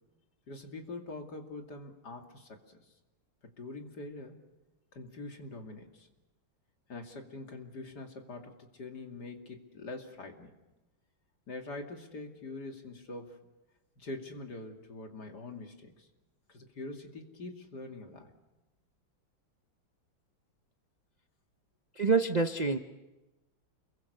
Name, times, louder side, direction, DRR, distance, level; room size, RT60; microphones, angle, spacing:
voice 1, 0.5-2.8 3.4-4.4 4.9-6.1 6.9-10.5 11.5-13.4 14.0-16.1 16.5-18.3, left 2 dB, 50° left, 3 dB, 3.0 m, -44 dB
voice 2, 22.0-22.8, right 4 dB, 65° right, 7 dB, 0.4 m, -26 dB
29.5 x 22.5 x 6.8 m, 1.1 s
omnidirectional pair, 2.2 m